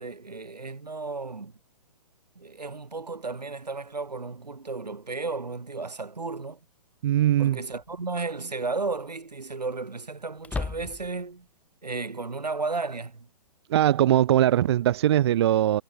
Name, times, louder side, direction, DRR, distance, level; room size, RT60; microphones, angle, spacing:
voice 1, 0.0-1.6 2.4-6.6 7.4-11.5 11.8-13.3, right 3 dB, 80° right, 3.7 m, -33 dB
sound 1, 5.8-5.9 7.7-8.1 8.5-8.6 10.4-11.3, left 4 dB, 5° left, 2.2 m, -35 dB
voice 2, 7.0-7.6 13.7-15.8, right 12 dB, 40° right, 0.6 m, -21 dB
figure-of-eight pair, 125°, 21 cm